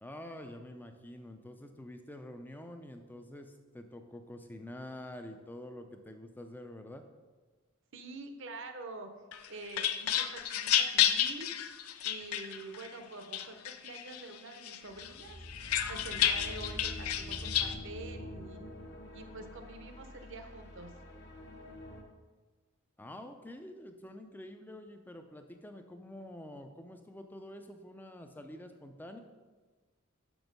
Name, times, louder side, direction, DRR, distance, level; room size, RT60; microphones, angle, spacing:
voice 1, 0.0-7.0 23.0-29.2, left 1 dB, 10° left, 6 dB, 0.5 m, -47 dB
voice 2, 7.9-9.1 9.5-11.5 12.0-15.4 15.9-18.6 19.1-20.9, right 2 dB, 55° right, 6 dB, 0.8 m, -46 dB
sound 1, 9.3-12.9 13.3-14.2 14.6-17.7, left 10 dB, 80° left, 0.5 m, -31 dB
sound 2, 14.9-22.0, left 1 dB, 50° left, 1.1 m, -46 dB
6.2 x 6.0 x 5.2 m, 1.3 s
head